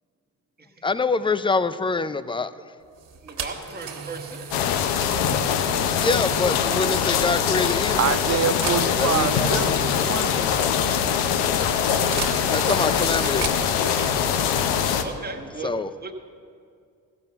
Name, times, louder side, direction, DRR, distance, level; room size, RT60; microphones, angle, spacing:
voice 1, 0.8-2.5 6.0-8.1 9.0-9.8 12.2-13.5 15.6-15.9, left 3 dB, 10° left, 14 dB, 0.4 m, -25 dB
sound 1, 3.0-14.1, right 6 dB, 55° right, 1.7 m, -38 dB
voice 2, 3.2-4.7 15.0-15.7 16.0-16.1, right 3 dB, 20° right, 3 dB, 1.5 m, -37 dB
sound 2, 4.5-15.0, left 8 dB, 85° left, 0.8 m, -23 dB
Drum, 5.2-6.7 9.4-11.5, left 3 dB, 60° left, 1.3 m, -35 dB
voice 3, 8.0-10.4, right 9 dB, 40° right, 13 dB, 0.6 m, -26 dB
15.0 x 6.9 x 6.8 m, 2.3 s
supercardioid pair, 55°, 42 cm